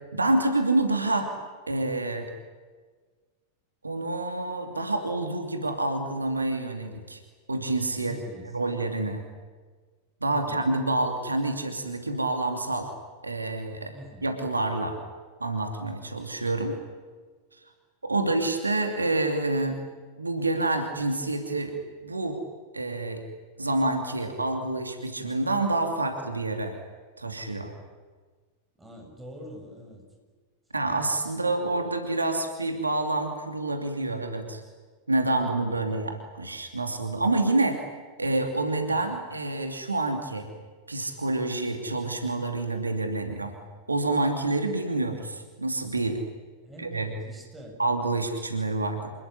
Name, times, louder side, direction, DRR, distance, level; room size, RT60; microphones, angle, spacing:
voice 1, 0.1-1.3 1.7-2.3 3.8-7.2 7.5-8.2 8.5-9.2 10.2-12.9 13.2-13.9 14.2-15.0 15.4-16.8 18.0-19.8 20.2-22.4 22.7-23.2 23.6-26.7 27.2-27.7 30.7-34.6 35.1-37.8 38.2-40.5 40.9-43.5 43.9-46.2 46.8-47.1 47.8-49.1, right 2 dB, 80° right, 5 dB, 2.7 m, -27 dB
voice 2, 8.0-8.6 10.3-10.7 13.9-14.3 28.8-30.0 31.3-31.4 38.9-39.2 46.7-47.8, equal, 10° right, 1 dB, 7.7 m, -45 dB
27.0 x 20.0 x 9.9 m, 1.5 s
figure-of-eight pair, 90°, 0 cm